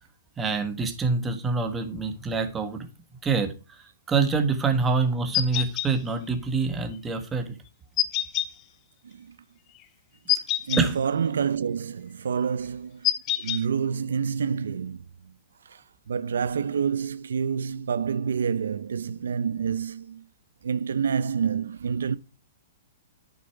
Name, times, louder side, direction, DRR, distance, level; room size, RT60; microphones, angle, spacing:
voice 1, 0.4-2.9 3.2-3.5 4.1-7.5 10.8-10.9, right 4 dB, 15° right, 1.4 m, -26 dB
sound 1, 5.3-5.9 8.0-8.5 10.3-10.8 13.0-13.6, left 13 dB, 30° left, 0.7 m, -25 dB
voice 2, 9.0-9.4 10.4-13.1 13.4-15.3 15.6-20.2 20.6-22.2, right 6 dB, 85° right, 0.6 m, -28 dB
9.4 x 6.7 x 4.6 m
hypercardioid pair, 150°, 0 cm